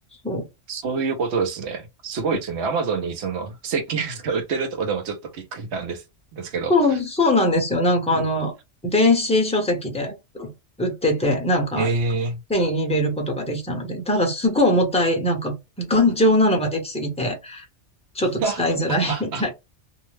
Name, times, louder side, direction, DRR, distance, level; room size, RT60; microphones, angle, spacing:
voice 1, 0.7-6.0 6.3-6.7 8.1-8.2 11.7-12.4 18.4-19.4, right 4 dB, 70° right, 0.9 m, -27 dB
voice 2, 6.7-8.5 8.8-10.5 10.8-11.9 12.5-17.6 18.1-19.5, left 1 dB, 5° left, 0.7 m, -21 dB
2.7 x 2.0 x 3.1 m
omnidirectional pair, 1.2 m